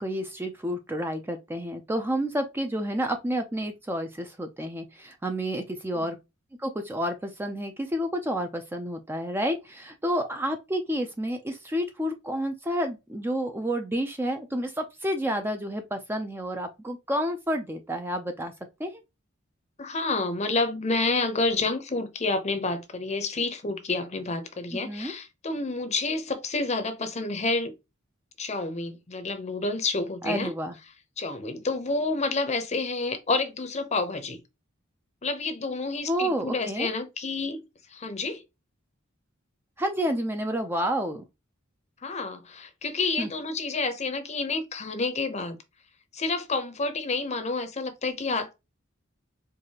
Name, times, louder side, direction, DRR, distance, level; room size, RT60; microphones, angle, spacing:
voice 1, 0.0-6.2 6.6-18.5 18.8-18.9 24.7-25.1 30.2-30.8 36.1-36.9 39.8-41.2 43.2-43.3, equal, 10° right, 0.4 m, -30 dB
voice 2, 19.8-27.7 28.4-30.5 31.2-34.4 35.2-37.6 37.9-38.4 42.0-45.6 46.1-48.5, left 3 dB, 35° left, 0.7 m, -29 dB
4.6 x 2.5 x 2.8 m
head